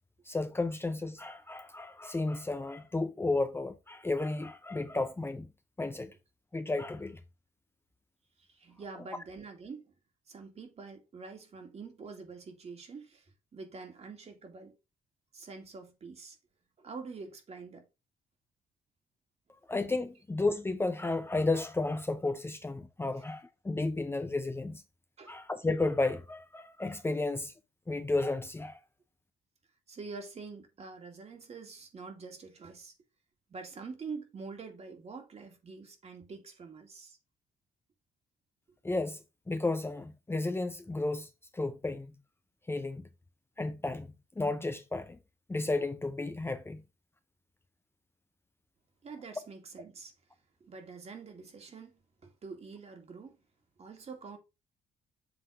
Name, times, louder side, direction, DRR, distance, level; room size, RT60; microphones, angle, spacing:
voice 1, 0.3-5.5 5.8-6.1 6.5-7.2 19.7-24.8 25.3-27.5 27.9-28.8 38.8-41.3 41.5-42.1 42.7-43.1 43.6-44.1 44.4-45.2 45.5-46.8, left 2 dB, 15° left, 0.7 m, -33 dB
voice 2, 8.4-9.9 10.3-14.7 15.3-16.4 16.8-17.9 25.2-25.4 29.9-32.9 33.5-37.2 49.0-50.1 50.6-53.4 53.8-54.4, right 4 dB, 45° right, 2.3 m, -46 dB
7.8 x 3.6 x 4.7 m
cardioid pair, 85°, 15 cm